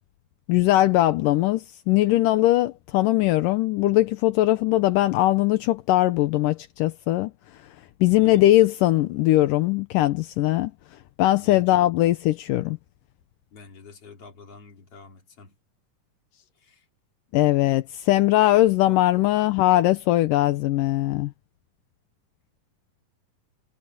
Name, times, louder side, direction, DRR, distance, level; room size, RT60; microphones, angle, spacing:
voice 1, 0.5-7.3 8.0-10.7 11.2-12.8 17.3-21.3, left 15 dB, 80° left, 2.5 m, -20 dB
voice 2, 8.1-8.5 11.3-11.9 13.5-15.5 16.6-16.8 18.9-19.4, left 4 dB, 45° left, 4.1 m, -46 dB
omnidirectional pair, 3.8 m